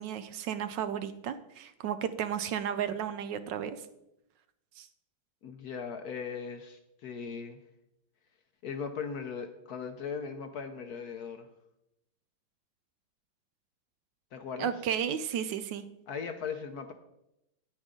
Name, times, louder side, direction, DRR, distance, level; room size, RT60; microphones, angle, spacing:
voice 1, 0.0-3.8 4.8-4.9 14.6-15.8, right 8 dB, 75° right, 11 dB, 1.2 m, -33 dB
voice 2, 5.4-7.6 8.6-11.5 14.3-14.7 16.1-16.9, left 6 dB, 65° left, 7 dB, 1.0 m, -38 dB
9.4 x 8.9 x 3.7 m, 0.84 s
omnidirectional pair, 2.1 m